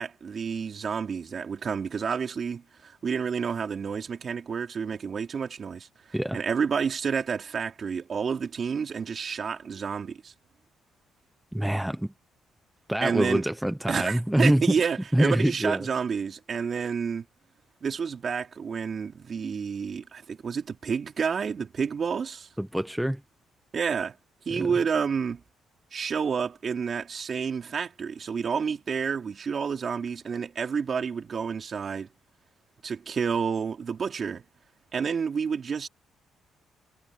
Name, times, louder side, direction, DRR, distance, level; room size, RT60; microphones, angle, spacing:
voice 1, 0.0-5.9 6.3-10.3 13.0-13.4 13.9-17.2 17.8-22.5 23.7-24.2 24.5-25.4 25.9-32.1 32.8-34.4 34.9-35.9, right 6 dB, 45° right, 3.6 m, -29 dB
voice 2, 11.5-12.1 12.9-14.6 15.1-15.8 22.6-23.2 24.5-24.7, right 1 dB, 5° right, 1.0 m, -25 dB
cardioid pair, 90°, 0 cm